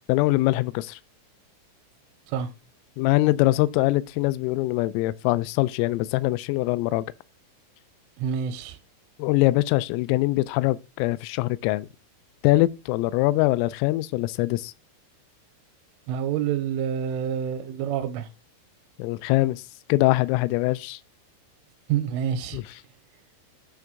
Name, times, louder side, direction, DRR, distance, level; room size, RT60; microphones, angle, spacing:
voice 1, 0.1-1.0 3.0-7.1 9.2-11.9 12.4-14.7 19.0-19.6 19.9-21.0 22.5-22.7, left 19 dB, 85° left, 3.1 m, -23 dB
voice 2, 8.2-8.8 16.1-18.3 21.9-22.6, right 8 dB, 80° right, 3.2 m, -27 dB
9.3 x 3.5 x 5.2 m
omnidirectional pair, 5.8 m